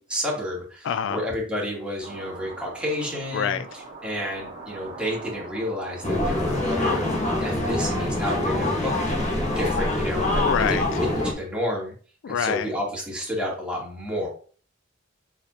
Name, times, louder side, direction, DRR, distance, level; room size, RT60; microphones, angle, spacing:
voice 1, 0.1-7.1 7.4-8.9 9.6-10.4 10.7-11.9 12.3-14.3, left 1 dB, 5° right, 2.4 m, -30 dB
voice 2, 0.8-1.2 3.3-3.7 10.3-10.8 12.2-12.7, left 8 dB, 65° left, 0.3 m, -26 dB
sound 1, 2.0-7.4, right 3 dB, 35° right, 2.3 m, -42 dB
sound 2, 6.0-11.3, left 1 dB, 35° left, 1.4 m, -25 dB
6.9 x 4.9 x 2.9 m
head